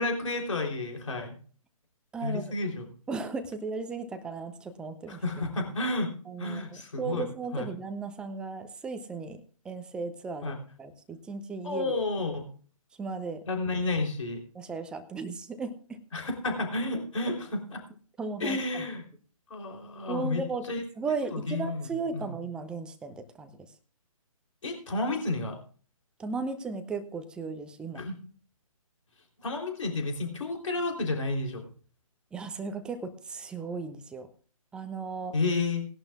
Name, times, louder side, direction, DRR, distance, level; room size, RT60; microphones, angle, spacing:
voice 1, 0.0-1.3 2.2-2.9 5.1-6.1 6.4-7.7 10.4-10.6 11.6-12.5 13.5-14.4 16.1-17.8 18.4-19.0 19.5-20.8 21.3-22.3 24.6-25.6 28.0-28.2 29.4-31.7 35.3-35.9, left 2 dB, 60° left, 2 dB, 3.5 m, -31 dB
voice 2, 2.1-2.5 3.1-5.2 6.3-6.6 7.0-12.0 13.0-13.4 14.5-16.0 18.2-18.9 20.1-20.7 21.0-23.6 26.2-28.0 32.3-34.3 34.7-35.3, right 4 dB, 5° right, 9 dB, 0.6 m, -36 dB
19.0 x 11.0 x 2.4 m, 0.41 s
figure-of-eight pair, 140°, 19 cm